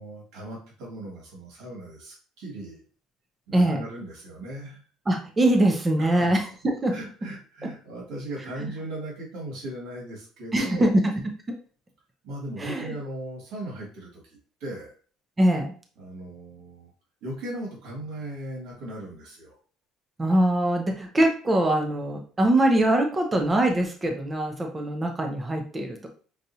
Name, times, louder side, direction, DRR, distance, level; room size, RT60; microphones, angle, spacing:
voice 1, 0.0-2.8 3.5-4.8 6.0-6.3 6.9-10.9 12.2-14.9 16.0-16.9 17.2-19.6, right 1 dB, 75° right, -3 dB, 2.1 m, -38 dB
voice 2, 3.5-3.8 5.1-6.9 10.5-11.1 11.5-11.6 12.6-12.9 15.4-15.7 20.2-26.1, right 1 dB, 15° right, 3 dB, 0.6 m, -23 dB
5.4 x 2.5 x 2.8 m, 0.41 s
cardioid pair, 145°, 0 cm